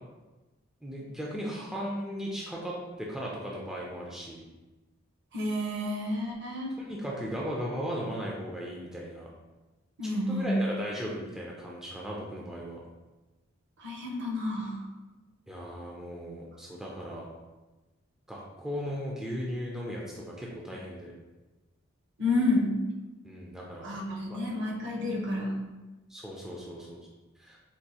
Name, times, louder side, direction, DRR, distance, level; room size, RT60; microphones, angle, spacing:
voice 1, 0.8-4.4 6.8-9.3 10.0-12.8 15.5-17.3 18.3-21.1 23.2-23.9 24.3-24.4 26.1-27.0 27.4-27.6, equal, 5° right, -4 dB, 0.4 m, -37 dB
voice 2, 5.3-6.7 10.0-10.5 13.8-14.8 22.2-22.8 23.8-25.6, left 2 dB, 55° right, -1 dB, 0.7 m, -30 dB
4.5 x 2.4 x 2.7 m, 1.1 s
head